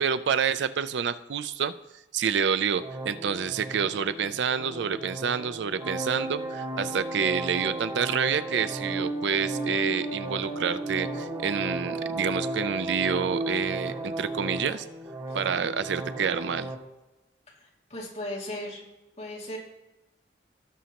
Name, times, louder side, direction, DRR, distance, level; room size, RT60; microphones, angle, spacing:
voice 1, 0.0-1.7 2.1-14.9 15.3-16.7, right 7 dB, 80° right, 13 dB, 0.4 m, -28 dB
sound 1, 2.8-16.7, right 1 dB, 30° right, 1.3 m, -34 dB
voice 2, 17.9-18.8 19.2-19.6, left 1 dB, 40° left, -3 dB, 2.3 m, -36 dB
18.5 x 6.3 x 2.9 m, 0.98 s
head